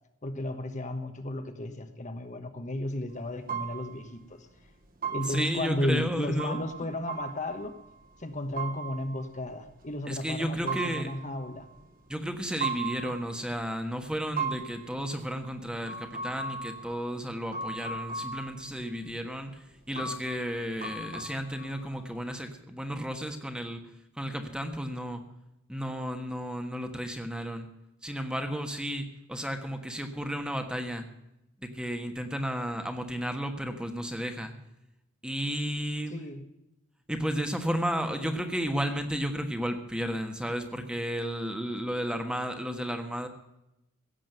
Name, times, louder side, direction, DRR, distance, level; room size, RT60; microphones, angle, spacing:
voice 1, 0.2-4.5 5.1-7.7 8.2-11.7 36.1-36.4, left 1 dB, 35° left, 7 dB, 1.2 m, -34 dB
sound 1, 3.1-3.2 3.5-4.2 4.6-4.7 4.9-8.2 8.6-9.9 10.5-11.9 12.6-13.6 14.1-18.7 19.0-19.1 19.5-19.6 20.0-22.3, right 5 dB, 45° right, 1.9 m, -38 dB
voice 2, 5.2-6.6 10.1-11.1 12.1-23.9 24.2-25.2 25.7-27.7 28.0-31.0 31.6-34.5 35.2-36.1 37.1-43.3, equal, 5° right, 6 dB, 1.3 m, -33 dB
16.5 x 7.5 x 7.7 m, 0.88 s
head